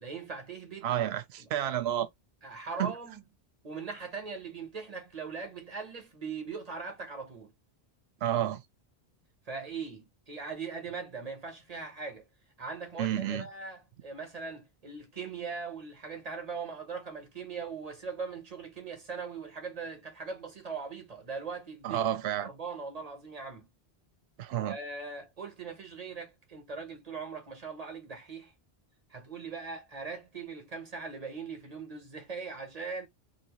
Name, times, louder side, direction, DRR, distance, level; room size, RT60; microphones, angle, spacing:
voice 1, 0.0-0.9 1.4-1.5 2.4-3.2 3.6-7.5 9.5-12.3 12.6-22.1 22.4-23.7 24.7-28.5 29.1-33.1, right 5 dB, 40° right, 1.0 m, -40 dB
voice 2, 0.8-2.1 2.8-2.9 8.2-8.6 13.0-13.5 21.8-22.5 24.4-24.8, right 11 dB, 80° right, 0.8 m, -30 dB
2.8 x 2.7 x 2.8 m
omnidirectional pair, 1.0 m